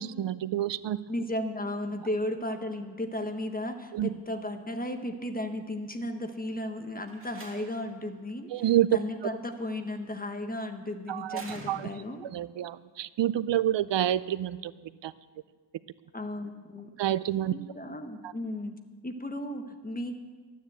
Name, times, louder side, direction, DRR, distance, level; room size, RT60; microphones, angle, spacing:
voice 1, 0.0-1.0 3.9-4.1 8.5-8.9 11.1-11.9 12.2-14.7 15.0-15.1 17.0-17.5 18.2-18.3, right 12 dB, 75° right, 16 dB, 0.5 m, -28 dB
voice 2, 1.1-8.5 8.9-12.2 16.1-16.9 17.5-18.8 19.0-20.2, left 1 dB, 20° left, 6 dB, 1.2 m, -35 dB
Slam, 7.0-8.0 9.5-10.0 11.3-12.3, right 2 dB, 30° right, 2.4 m, -47 dB
12.5 x 9.6 x 7.9 m, 1.4 s
wide cardioid pair, 100°, 43 cm